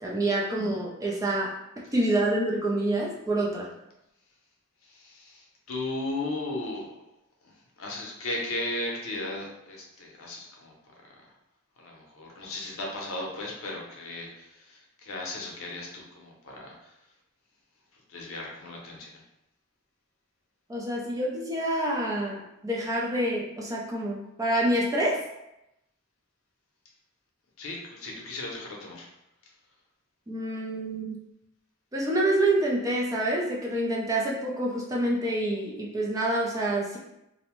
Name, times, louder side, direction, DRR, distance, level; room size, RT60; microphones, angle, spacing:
voice 1, 0.0-1.5 1.9-3.7 20.7-25.2 30.3-31.2 31.9-37.0, right 1 dB, 15° right, -3 dB, 0.4 m, -27 dB
voice 2, 4.8-6.9 7.4-7.5 7.8-10.7 11.8-16.9 18.1-19.1 27.6-29.1, left 2 dB, 75° left, -1 dB, 0.6 m, -36 dB
2.6 x 2.0 x 2.9 m, 0.88 s
head